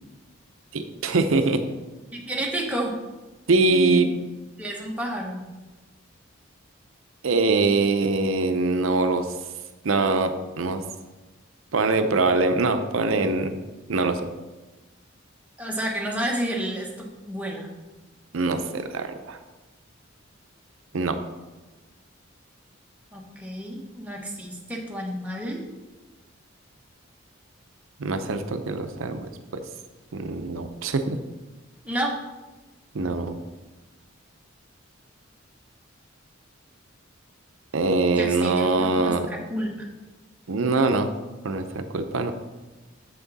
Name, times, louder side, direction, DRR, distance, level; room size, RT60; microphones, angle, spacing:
voice 1, 0.7-1.6 3.5-4.1 7.2-9.3 9.8-10.3 10.6-10.8 11.7-13.5 13.9-14.3 18.3-19.4 20.9-21.2 28.0-29.3 29.5-29.6 30.1-31.2 32.9-33.4 37.7-39.3 40.5-41.1 41.4-42.3, right 3 dB, 80° right, 8 dB, 0.6 m, -23 dB
voice 2, 2.1-2.9 4.6-5.4 15.6-17.7 23.1-25.6 31.8-32.2 38.2-39.7, right 1 dB, 5° right, -2 dB, 1.1 m, -30 dB
7.3 x 5.9 x 4.1 m, 1.2 s
head